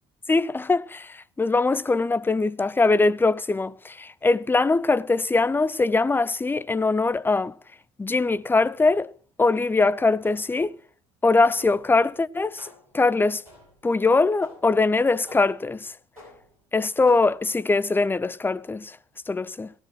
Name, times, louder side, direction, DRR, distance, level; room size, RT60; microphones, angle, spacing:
voice 1, 0.3-7.5 8.0-9.1 9.4-10.7 11.2-12.7 12.9-13.4 13.8-15.9 16.7-19.0 19.3-19.7, left 3 dB, 10° left, 0.5 m, -22 dB
sound 1, 10.2-10.7 11.6-12.0 12.6-13.0 13.4-13.9 14.4-14.8 15.3-15.7 16.2-16.6 17.1-17.5, left 1 dB, 90° right, 5.3 m, -50 dB
17.0 x 12.0 x 3.1 m
figure-of-eight pair, 55°, 18 cm